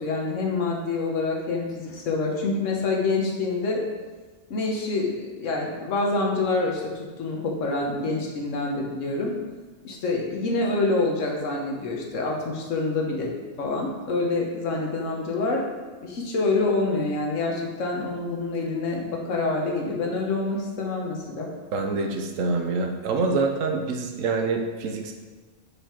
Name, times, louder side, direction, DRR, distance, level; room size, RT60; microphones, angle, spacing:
voice 1, 0.0-3.8 4.5-9.3 9.8-13.3 13.6-15.7 16.0-21.5, left 3 dB, 70° left, 0 dB, 1.3 m, -26 dB
voice 2, 21.7-25.1, right 3 dB, 75° right, 4 dB, 1.1 m, -26 dB
4.9 x 4.8 x 4.4 m, 1.3 s
omnidirectional pair, 1.4 m